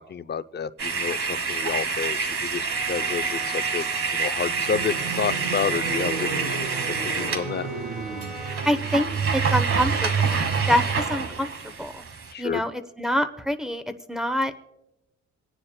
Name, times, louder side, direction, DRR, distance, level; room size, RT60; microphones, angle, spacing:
voice 1, 0.0-3.8 4.1-6.6 7.0-7.7 12.3-12.6, left 6 dB, 35° left, 11 dB, 0.6 m, -30 dB
sound 1, 0.8-7.5 7.9-8.0 8.2-12.3, right 5 dB, 45° right, 1.4 m, -27 dB
Bowed string instrument, 2.6-8.9, right 2 dB, 20° right, 3.5 m, -42 dB
sound 2, 4.4-9.1, right 5 dB, 75° right, 1.9 m, -34 dB
voice 2, 8.6-9.1 9.3-10.4 10.7-10.8 11.1-12.0 12.4-13.8 14.1-14.5, equal, ahead, 9 dB, 0.9 m, -25 dB
28.0 x 9.9 x 2.3 m, 0.89 s
cardioid pair, 90°, 30 cm